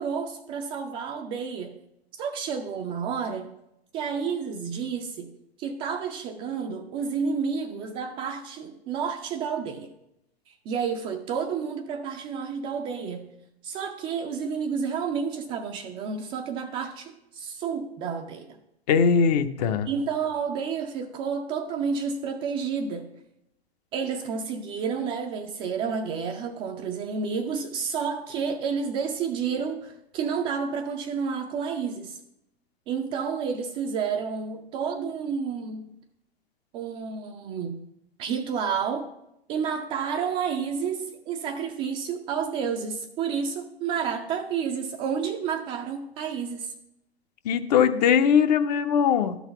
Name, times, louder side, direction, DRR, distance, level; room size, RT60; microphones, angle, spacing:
voice 1, 0.0-1.7 2.2-3.5 3.9-5.3 5.6-9.9 10.5-13.3 13.6-18.6 19.9-23.1 23.9-32.2 32.9-35.9 36.7-37.8 38.2-39.1 39.5-46.7, right 6 dB, 15° right, 5 dB, 0.4 m, -30 dB
voice 2, 18.9-19.9 47.4-49.4, left 7 dB, 40° left, 8 dB, 0.7 m, -21 dB
12.0 x 4.1 x 6.9 m, 0.83 s
figure-of-eight pair, 100°, 32 cm